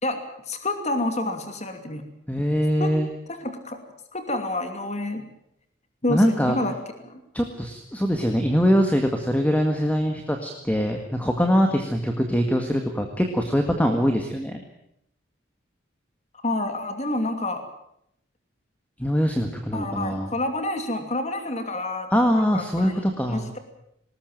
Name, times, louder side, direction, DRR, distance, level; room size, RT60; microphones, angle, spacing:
voice 1, 0.0-2.0 2.8-2.9 3.3-3.8 4.1-5.3 6.0-6.8 7.0-7.2 16.4-17.6 19.7-22.1 22.4-23.6, left 2 dB, 35° left, 7 dB, 2.8 m, -28 dB
voice 2, 2.3-3.1 6.1-6.6 7.3-14.6 19.0-20.3 22.1-23.4, equal, 10° left, 4 dB, 1.8 m, -23 dB
20.0 x 19.5 x 9.2 m, 0.75 s
head